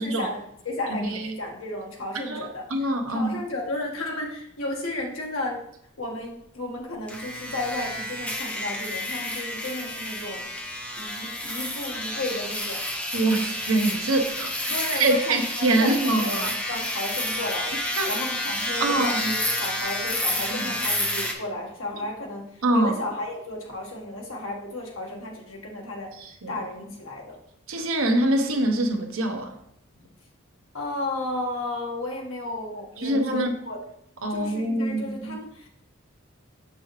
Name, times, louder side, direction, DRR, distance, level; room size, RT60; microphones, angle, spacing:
voice 1, 0.0-2.6 3.1-5.6 6.0-10.4 11.0-12.8 14.7-17.7 18.1-22.5 22.7-26.1 26.5-27.4 29.9-30.1 30.7-33.8 34.3-35.7, left 2 dB, 80° left, 1.5 m, -33 dB
voice 2, 2.3-3.3 13.1-16.5 18.0-18.1 18.8-19.3 20.5-20.6 22.6-23.0 26.2-26.6 27.7-29.6 33.0-33.5 34.2-35.4, right 2 dB, 85° right, 0.9 m, -25 dB
sound 1, 7.1-21.3, left 1 dB, 5° left, 0.6 m, -30 dB
6.5 x 5.3 x 3.2 m
head